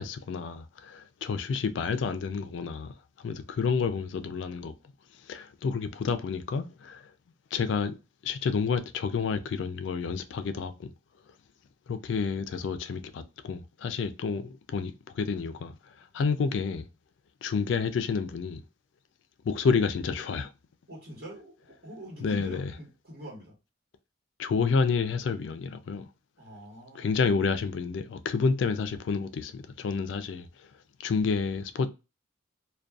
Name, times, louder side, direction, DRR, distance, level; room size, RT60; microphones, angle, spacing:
voice 1, 0.0-2.9 3.2-4.7 5.3-7.0 7.5-8.0 8.2-10.9 11.9-15.7 16.1-16.9 17.4-18.6 19.5-20.5 22.2-22.7 24.4-26.1 26.9-30.5 31.0-31.9, left 5 dB, 70° left, 0.3 m, -29 dB
voice 2, 20.9-23.5 26.4-27.1, equal, 55° right, 1.4 m, -44 dB
2.5 x 2.2 x 2.3 m
head